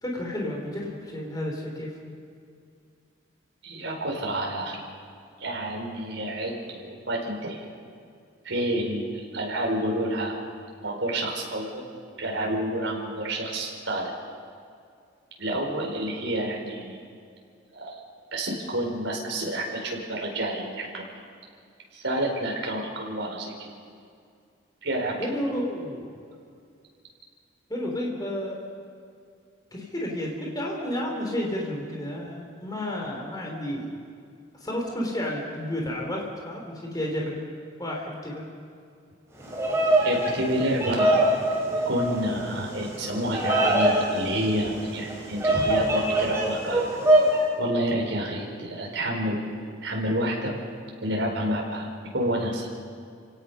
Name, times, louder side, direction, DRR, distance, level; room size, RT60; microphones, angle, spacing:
voice 1, 0.0-1.9 25.2-26.1 27.7-28.6 29.7-33.9 34.6-37.5 37.8-38.4, left 1 dB, 20° left, -1 dB, 3.6 m, -31 dB
voice 2, 3.6-4.8 5.4-7.6 8.4-10.4 10.8-11.8 12.2-14.1 15.4-17.0 17.7-18.0 18.3-21.1 21.9-23.7 24.8-25.2 40.0-41.2 41.8-46.8 47.6-49.4 49.8-50.5 51.0-51.9 52.1-52.7, right 1 dB, 70° right, 0 dB, 4.6 m, -29 dB
Bird vocalization bird call bird song, 39.4-47.4, right 1 dB, 15° right, 3.8 m, -24 dB
29.5 x 17.5 x 5.6 m, 2.3 s
head